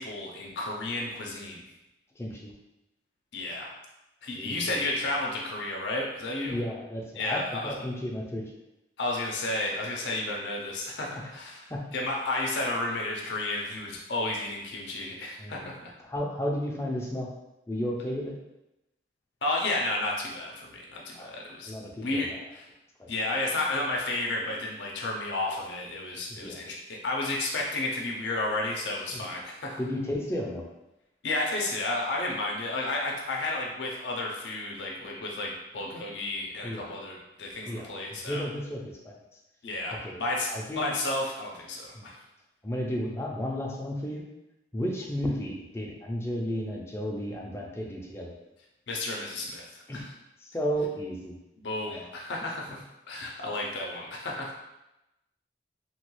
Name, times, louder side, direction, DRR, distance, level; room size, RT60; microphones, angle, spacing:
voice 1, 0.0-1.6 3.3-3.7 4.2-6.6 7.1-7.7 9.0-11.6 11.9-15.9 19.4-21.7 22.0-22.7 23.1-29.8 31.2-38.4 39.6-42.2 48.9-50.0 51.6-54.5, left 2 dB, 80° left, -2 dB, 0.5 m, -32 dB
voice 2, 2.2-2.5 4.3-5.1 6.5-8.5 11.7-11.8 15.4-15.7 16.0-17.3 17.7-18.3 21.1-21.3 21.6-22.4 23.0-23.1 26.3-26.6 29.1-29.3 29.8-30.7 36.6-36.9 37.7-37.9 38.2-39.1 40.0-40.2 40.5-40.9 41.9-42.1 42.6-44.2 44.7-48.3 49.9-50.0 50.4-51.4 51.9-52.0, equal, 15° left, -2 dB, 0.4 m, -33 dB
3.0 x 2.3 x 3.0 m, 0.93 s
head